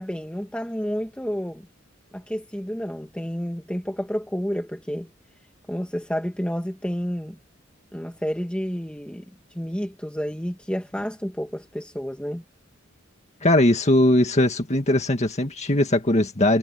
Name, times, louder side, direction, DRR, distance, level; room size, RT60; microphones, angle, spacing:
voice 1, 0.0-1.7 2.1-5.1 5.7-7.4 7.9-12.4, equal, 5° left, 2.0 m, -30 dB
voice 2, 13.4-16.6, left 1 dB, 35° left, 1.9 m, -20 dB
head